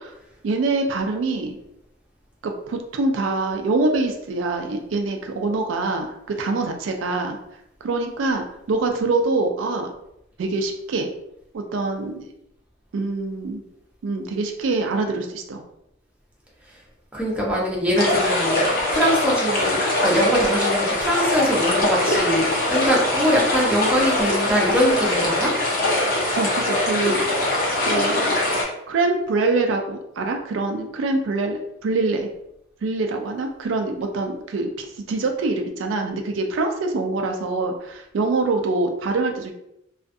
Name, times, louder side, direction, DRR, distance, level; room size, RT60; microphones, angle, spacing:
voice 1, 0.4-1.6 2.4-7.4 7.8-9.9 10.4-11.1 11.5-12.3 12.9-13.6 14.0-15.6 26.4-27.3 27.8-28.4 28.9-32.3 32.8-39.5, right 3 dB, 85° right, 4 dB, 0.4 m, -24 dB
voice 2, 17.1-25.5, equal, 5° right, -5 dB, 0.6 m, -22 dB
sound 1, 17.9-28.6, left 1 dB, 50° left, 0.7 m, -22 dB
2.4 x 2.3 x 2.5 m, 0.81 s
head